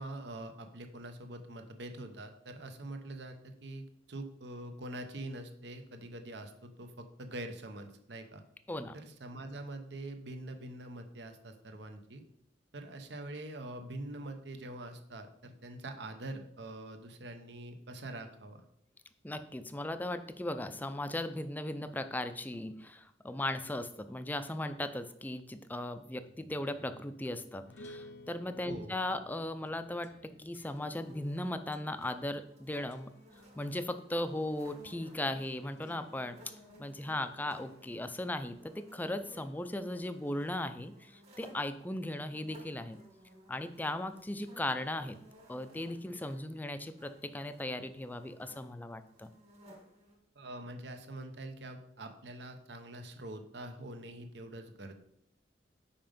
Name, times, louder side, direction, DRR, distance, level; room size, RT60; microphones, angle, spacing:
voice 1, 0.0-8.4 8.9-12.2 12.7-18.6 28.6-28.9 50.4-54.9, right 1 dB, 70° right, 6 dB, 0.9 m, -44 dB
voice 2, 19.2-33.1 33.6-36.4 36.8-43.0 43.5-45.2 45.5-49.3, left 1 dB, 10° left, 10 dB, 0.4 m, -37 dB
sound 1, 26.2-32.6 32.9-33.3 35.7-36.6, left 1 dB, 75° left, 0.6 m, -57 dB
sound 2, 30.6-50.1, equal, 35° right, 2.0 m, -59 dB
5.6 x 5.1 x 5.2 m, 0.72 s
head